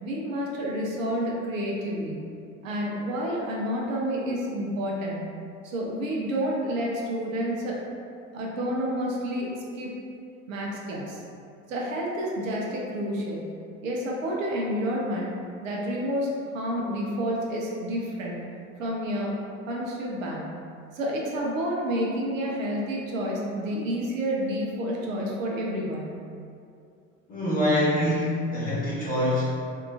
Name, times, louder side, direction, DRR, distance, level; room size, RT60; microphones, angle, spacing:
voice 1, 0.0-2.2 2.6-5.2 5.6-7.8 8.3-9.9 10.5-11.2 11.7-13.5 13.8-15.3 15.6-18.4 18.8-19.3 19.7-20.5 20.9-26.1, equal, 80° right, -3 dB, 0.6 m, -29 dB
voice 2, 27.3-29.5, left 1 dB, 20° left, -10 dB, 1.2 m, -25 dB
2.7 x 2.4 x 2.3 m, 2.4 s
figure-of-eight pair, 65°, 39 cm